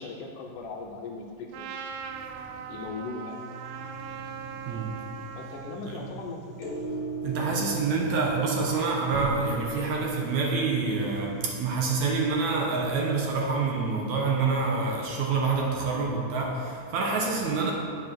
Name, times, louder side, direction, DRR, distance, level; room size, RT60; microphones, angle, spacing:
voice 1, 0.0-1.7 2.7-3.4 5.4-6.7, left 3 dB, 75° left, 2 dB, 2.3 m, -38 dB
Trumpet, 1.5-5.8, right 7 dB, 85° right, 2.3 m, -40 dB
voice 2, 2.1-2.7 3.9-5.3 5.9-6.0 7.2-17.7, right 4 dB, 70° right, -1 dB, 2.1 m, -28 dB
sound 1, 3.3-13.3, right 3 dB, 25° right, 1.4 m, -38 dB
9.2 x 7.5 x 6.0 m, 2.3 s
omnidirectional pair, 3.9 m